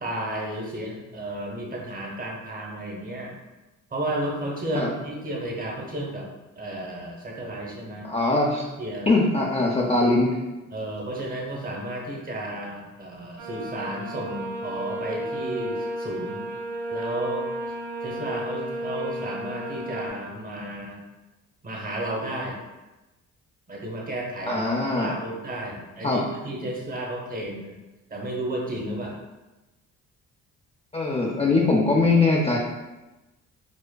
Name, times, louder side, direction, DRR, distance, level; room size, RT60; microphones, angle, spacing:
voice 1, 0.0-3.3 3.9-6.3 6.6-8.0 8.8-9.2 10.7-16.4 16.9-17.4 18.0-21.0 21.6-22.6 23.7-27.8 28.1-29.1, right 1 dB, 30° right, -2 dB, 0.9 m, -33 dB
voice 2, 8.0-8.6 9.1-10.4 24.5-25.1 26.0-26.2 30.9-32.6, left 3 dB, 20° left, -2 dB, 0.4 m, -21 dB
sound 1, 13.4-20.1, right 1 dB, 85° right, 0.8 m, -33 dB
5.0 x 2.1 x 2.2 m, 1.1 s
cardioid pair, 90°, 30 cm